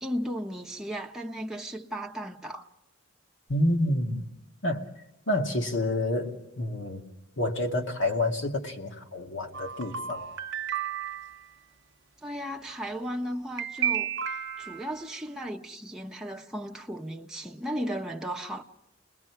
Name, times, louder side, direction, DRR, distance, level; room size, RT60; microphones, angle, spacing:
voice 1, 0.0-2.7 12.2-14.1 14.6-18.6, equal, 5° right, 1.1 m, -35 dB
voice 2, 3.5-4.3 4.6-4.9 5.3-10.3, left 1 dB, 65° left, 2.4 m, -29 dB
sound 1, 9.5-11.4 13.6-15.1, right 9 dB, 65° right, 0.8 m, -32 dB
29.5 x 21.0 x 4.8 m
head